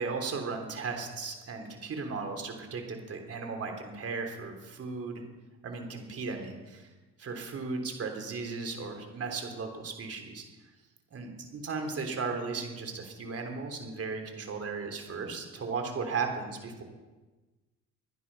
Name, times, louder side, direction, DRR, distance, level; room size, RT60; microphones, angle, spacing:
voice 1, 0.0-5.2 5.6-6.9 7.2-10.4 11.1-16.8, right 4 dB, 50° right, 4 dB, 3.6 m, -36 dB
24.0 x 10.0 x 5.5 m, 1.2 s
cardioid pair, 90°, 30 cm